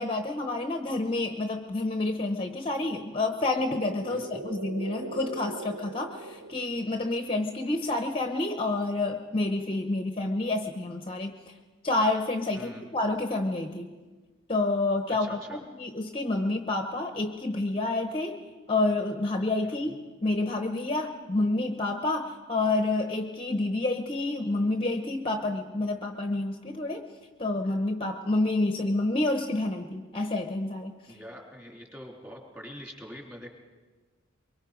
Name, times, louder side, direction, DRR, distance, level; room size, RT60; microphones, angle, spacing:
voice 1, 0.0-11.3 11.8-13.9 14.5-18.4 18.7-27.1 27.4-30.9, left 2 dB, 25° left, 6 dB, 0.9 m, -29 dB
sound 1, 3.0-7.1, right 2 dB, 90° right, 0.8 m, -41 dB
voice 2, 4.1-4.4 12.5-12.9 15.2-15.6 19.6-20.0 31.1-33.5, equal, 10° right, 0 dB, 3.1 m, -45 dB
23.5 x 23.0 x 5.1 m, 1.3 s
head